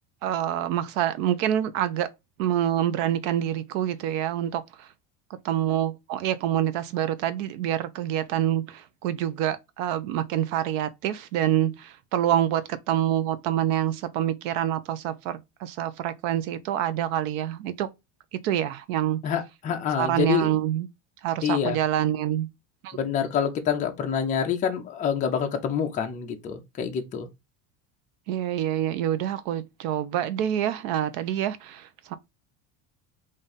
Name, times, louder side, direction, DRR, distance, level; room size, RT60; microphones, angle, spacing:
voice 1, 0.2-2.1 2.4-4.9 5.4-17.9 18.4-19.2 20.0-20.9 21.2-22.5 22.8-23.0 28.3-32.1, right 11 dB, 90° right, 0.7 m, -26 dB
voice 2, 19.2-20.6 21.4-21.8 22.9-27.3, left 8 dB, 20° left, 0.4 m, -27 dB
3.6 x 2.6 x 4.0 m
cardioid pair, 165°, 38 cm